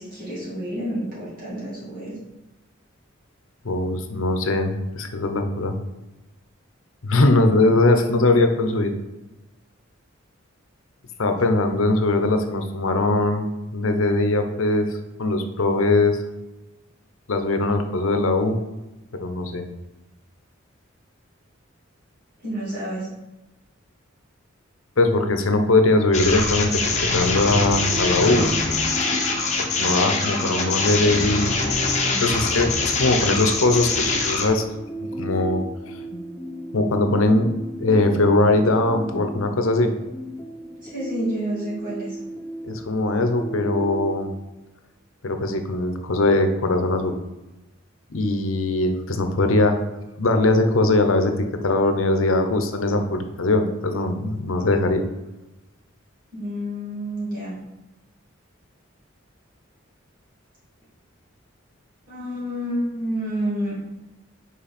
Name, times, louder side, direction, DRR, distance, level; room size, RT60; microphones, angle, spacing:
voice 1, 0.0-2.2 22.4-23.1 40.8-42.2 56.3-57.6 62.1-63.7, equal, 45° right, -9 dB, 2.4 m, -29 dB
voice 2, 3.6-5.8 7.0-8.9 11.2-13.5 13.7-16.2 17.3-18.6 19.1-19.6 25.0-28.5 29.6-31.5 32.2-34.6 35.2-35.6 35.9-36.0 36.7-37.5 37.8-39.9 42.7-44.3 45.2-47.2 48.1-49.8 50.2-55.0, left 2 dB, 80° left, 7 dB, 0.8 m, -21 dB
sound 1, 26.1-34.5, left 3 dB, 35° left, 1.0 m, -23 dB
sound 2, 27.2-44.2, right 1 dB, 15° left, 0.4 m, -35 dB
5.7 x 4.6 x 4.3 m, 1.0 s
head